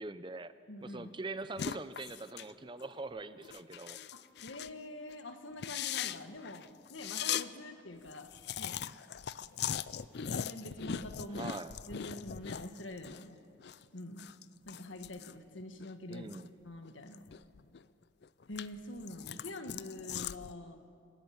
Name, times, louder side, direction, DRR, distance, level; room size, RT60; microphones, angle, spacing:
voice 1, 0.0-0.5 0.8-4.0 11.3-11.8 16.1-16.5, right 3 dB, 25° right, 12 dB, 0.6 m, -43 dB
voice 2, 0.7-1.1 4.1-8.3 8.6-8.8 10.2-11.5 11.9-13.4 13.9-14.3 14.6-16.3 16.6-17.3 18.5-20.8, left 1 dB, 80° left, 7 dB, 1.6 m, -45 dB
sound 1, 1.6-2.5 2.8-3.0 3.4-4.8 5.1-5.2 5.5-7.5 7.8-7.9 8.1-13.2 13.5-16.5 16.8-17.8 18.2-20.5, left 9 dB, 55° left, 0.4 m, -40 dB
28.0 x 13.5 x 8.8 m, 2.5 s
head